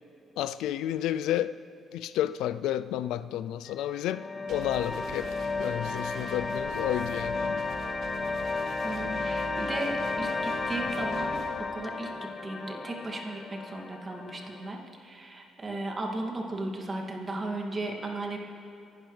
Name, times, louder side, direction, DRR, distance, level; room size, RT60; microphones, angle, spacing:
voice 1, 0.4-1.6 1.9-7.7, left 12 dB, 85° left, 14 dB, 0.3 m, -31 dB
sound 1, 3.7-14.7, left 3 dB, 35° left, 0.9 m, -33 dB
sound 2, 4.5-11.5, right 4 dB, 75° right, 3.0 m, -46 dB
voice 2, 8.8-18.4, right 2 dB, 30° right, 1 dB, 2.3 m, -36 dB
26.0 x 11.5 x 3.3 m, 2.7 s
cardioid pair, 85°, 0 cm